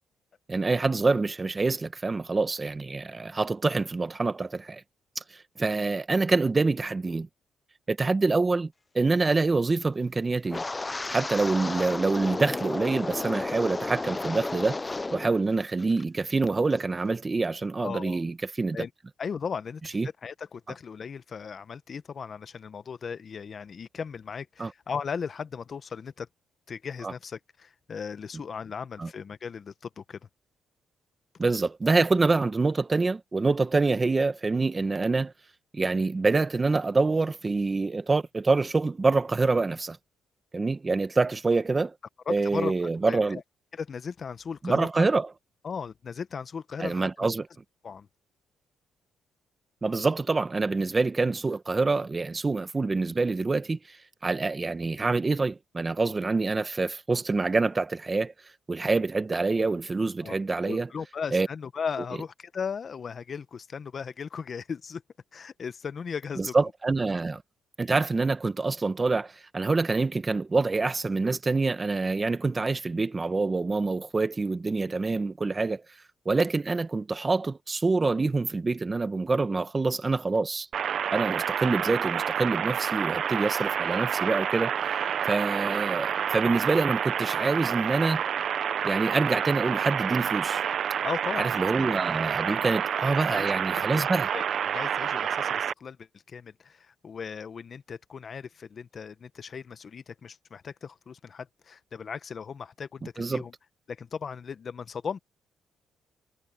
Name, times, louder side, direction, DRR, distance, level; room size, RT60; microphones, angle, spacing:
voice 1, 0.5-4.8 5.1-7.3 7.9-10.6 11.1-14.8 15.1-18.8 19.9-20.1 24.6-24.7 27.0-27.1 29.0-29.1 31.4-35.3 35.7-40.0 40.5-41.9 42.3-43.4 44.6-45.3 46.8-47.4 49.8-54.0 54.2-58.3 58.7-60.9 61.3-61.5 66.4-67.4 67.8-75.8 76.2-80.7 81.1-84.7 85.3-88.2 88.8-90.6 91.4-94.3 103.2-103.4, right 3 dB, 25° right, 1.3 m, -26 dB
Wind, 10.5-15.3 15.6-16.0 16.5-16.8, left 3 dB, 20° left, 0.7 m, -33 dB
voice 2, 17.8-18.2 18.7-18.9 19.2-19.8 20.2-26.3 26.7-30.2 42.3-42.7 43.0-43.4 43.7-45.1 45.6-47.3 47.8-48.1 60.2-60.4 60.6-65.0 65.3-66.5 91.0-92.0 92.4-92.6 93.0-93.5 93.9-94.0 94.3-94.5 94.7-103.0 103.3-103.5 103.9-105.2, left 6 dB, 45° left, 1.0 m, -37 dB
sound 1, 80.7-95.7, right 8 dB, 60° right, 0.8 m, -28 dB
cardioid pair, 90°, 0 cm